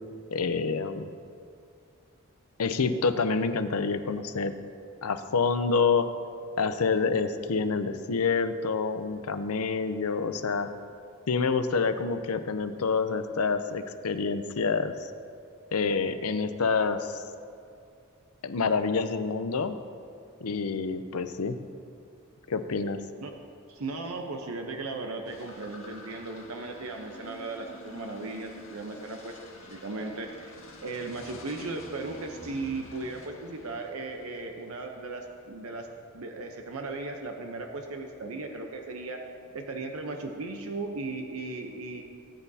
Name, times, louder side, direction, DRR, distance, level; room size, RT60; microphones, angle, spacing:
voice 1, 0.3-1.1 2.6-4.5 5.0-6.1 6.6-10.7 11.3-15.0 15.7-17.2 18.4-19.8 20.4-21.6 22.5-23.0, left 4 dB, 85° left, 9 dB, 0.6 m, -27 dB
voice 2, 23.7-29.4 29.7-30.5 30.8-35.9 36.1-39.2 39.5-42.0, right 3 dB, 75° right, 3 dB, 0.8 m, -36 dB
sound 1, 25.3-34.8, left 2 dB, 70° left, 1.9 m, -49 dB
18.0 x 9.1 x 2.8 m, 2.4 s
head